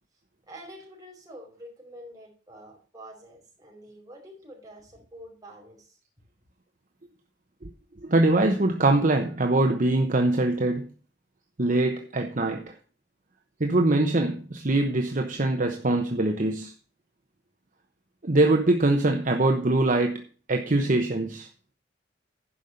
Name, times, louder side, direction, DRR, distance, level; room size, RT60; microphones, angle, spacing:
voice 1, 0.5-6.0, equal, 20° right, 4.8 m, -47 dB
voice 2, 8.0-10.9 11.6-12.7 13.6-16.7 18.2-21.5, right 2 dB, 45° right, 1.0 m, -23 dB
11.0 x 5.5 x 6.5 m
head